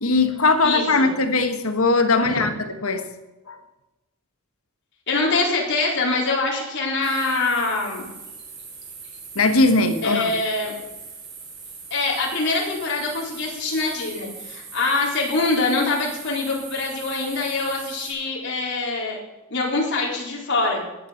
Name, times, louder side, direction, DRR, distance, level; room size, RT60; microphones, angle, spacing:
voice 1, 0.0-2.5 2.8-3.0 3.5-3.6 9.3-10.3, left 3 dB, 75° left, 8 dB, 1.6 m, -19 dB
voice 2, 0.6-1.1 2.2-2.4 5.1-8.1 10.0-10.8 11.9-19.2 19.5-20.8, left 3 dB, 55° left, -3 dB, 4.2 m, -24 dB
sound 1, 7.0-18.1, right 5 dB, 50° right, 6.1 m, -40 dB
16.0 x 11.0 x 5.9 m, 1.0 s
head